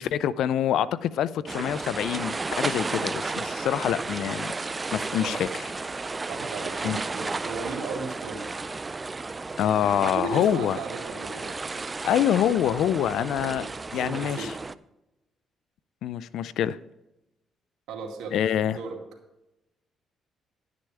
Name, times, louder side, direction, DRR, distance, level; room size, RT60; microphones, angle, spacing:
voice 1, 0.0-5.6 6.8-7.0 9.6-10.8 12.0-13.6 13.9-14.5 16.0-16.8 18.3-18.8, left 10 dB, 80° left, 17 dB, 0.4 m, -26 dB
sound 1, 1.5-14.7, right 3 dB, 25° right, 0.4 m, -33 dB
voice 2, 5.1-5.6 6.2-8.5 9.9-11.6 13.2-14.6 17.9-18.4 18.7-19.0, right 4 dB, 85° right, 1 dB, 2.3 m, -37 dB
11.5 x 9.6 x 3.4 m, 0.95 s
cardioid pair, 90°, 0 cm